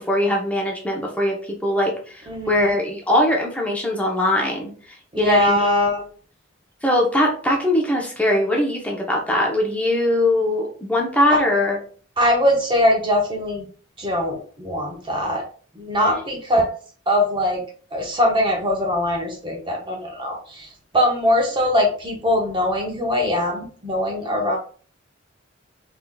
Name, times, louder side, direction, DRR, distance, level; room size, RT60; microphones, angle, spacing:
voice 1, 0.0-1.4 1.6-5.6 6.8-11.8 16.0-16.1, left 1 dB, 5° left, -1 dB, 0.8 m, -21 dB
voice 2, 2.3-2.7 5.1-6.1 11.3-11.4 12.2-13.7 14.0-15.5 15.7-16.7 17.1-17.6 17.9-20.7 20.9-24.6, left 1 dB, 25° right, 1 dB, 0.8 m, -21 dB
3.7 x 3.4 x 2.3 m, 0.42 s
head